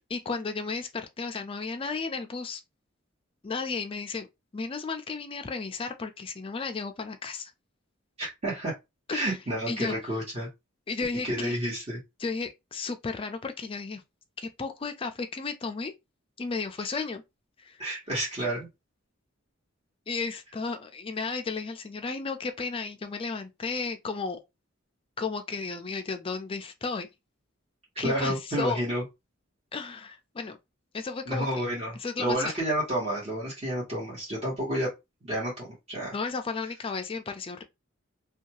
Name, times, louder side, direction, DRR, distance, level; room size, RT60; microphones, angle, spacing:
voice 1, 0.1-2.6 3.4-4.3 4.5-7.5 9.1-9.4 9.7-10.0 10.9-11.6 12.2-14.0 14.4-15.9 16.4-17.2 17.6-17.8 20.1-24.4 25.2-27.1 28.0-28.8 29.7-30.6 30.9-31.6 32.0-32.4 36.1-37.6, left 4 dB, 25° left, 0.4 m, -33 dB
voice 2, 8.2-8.7 9.1-10.5 11.2-12.0 17.8-18.7 28.0-29.0 31.3-34.9 35.2-36.1, right 1 dB, 30° right, 1.3 m, -30 dB
2.7 x 2.3 x 2.8 m
head